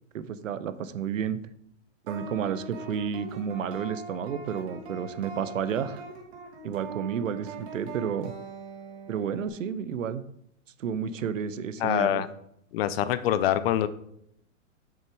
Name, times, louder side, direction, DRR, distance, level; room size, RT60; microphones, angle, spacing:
voice 1, 0.1-1.4 2.1-6.0 6.6-8.3 9.1-10.2 10.8-12.2, right 7 dB, 75° right, 13 dB, 0.8 m, -31 dB
sound 1, 2.1-9.5, right 4 dB, 55° right, 2.4 m, -41 dB
voice 2, 11.8-12.3 12.7-13.9, left 11 dB, 50° left, 15 dB, 0.7 m, -25 dB
7.0 x 6.4 x 4.7 m, 0.73 s
hypercardioid pair, 125°, 39 cm